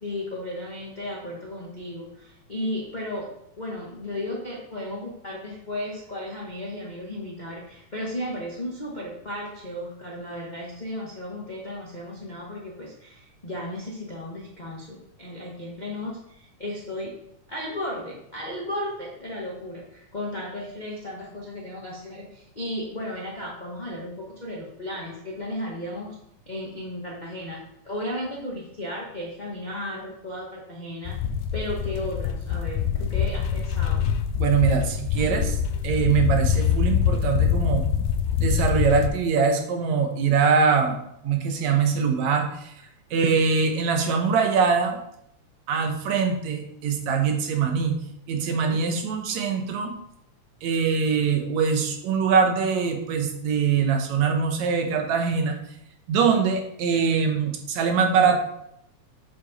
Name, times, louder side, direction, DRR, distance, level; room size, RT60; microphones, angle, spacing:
voice 1, 0.0-3.3 3.6-17.1 17.5-26.2 26.5-31.2 31.5-34.0 48.7-49.1, left 1 dB, 45° left, -4 dB, 0.5 m, -34 dB
sound 1, 31.0-39.1, left 8 dB, 85° left, 2.1 m, -24 dB
voice 2, 34.4-35.6 35.8-37.8 38.4-42.7 43.1-45.0 45.7-48.0 48.3-49.9 50.6-55.6 56.1-58.4, right 5 dB, 70° right, 4 dB, 2.2 m, -23 dB
7.7 x 7.0 x 4.3 m, 0.77 s
omnidirectional pair, 3.6 m